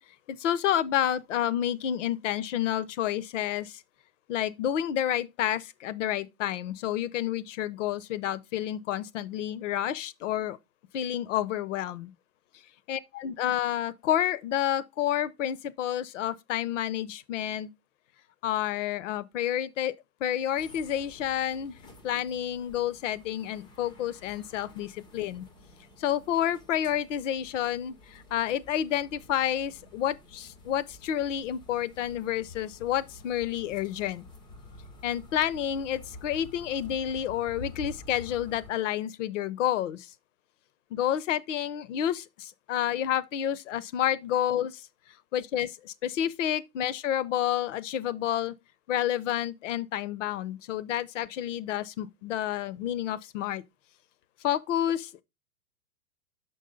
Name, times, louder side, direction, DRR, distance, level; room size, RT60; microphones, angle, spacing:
voice 1, 0.3-3.8 4.3-10.6 10.9-12.1 12.9-17.7 18.4-19.9 20.2-21.8 22.0-25.4 26.0-34.2 35.0-40.1 40.9-44.8 45.3-48.5 48.9-53.6 54.4-55.2, left 11 dB, 55° left, 0.7 m, -29 dB
sound 1, 20.6-38.7, left 2 dB, 10° left, 0.4 m, -49 dB
6.2 x 5.4 x 3.7 m
hypercardioid pair, 120°, 45 cm